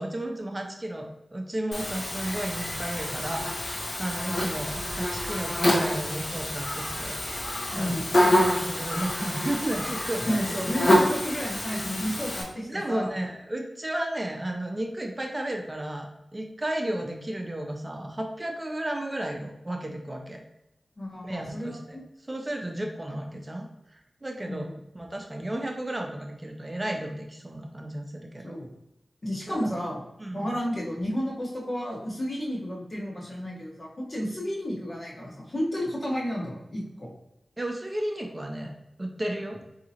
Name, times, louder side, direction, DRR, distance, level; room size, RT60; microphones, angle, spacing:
voice 1, 0.0-3.5 4.0-7.2 7.7-8.0 8.4-10.6 12.6-20.4 21.2-22.0 22.3-24.7 24.9-28.6 29.5-29.7 30.2-30.5 37.6-38.7 39.0-39.6, right 1 dB, 25° right, 2 dB, 0.6 m, -33 dB
Buzz, 1.7-12.4, left 1 dB, 65° left, 1.1 m, -27 dB
voice 2, 7.7-8.1 10.3-13.1 21.0-22.0 24.4-24.8 28.4-28.7 29.2-30.0 30.3-37.1, equal, 45° left, -4 dB, 1.2 m, -32 dB
3.7 x 2.8 x 2.8 m, 0.89 s
wide cardioid pair, 65°, 0 cm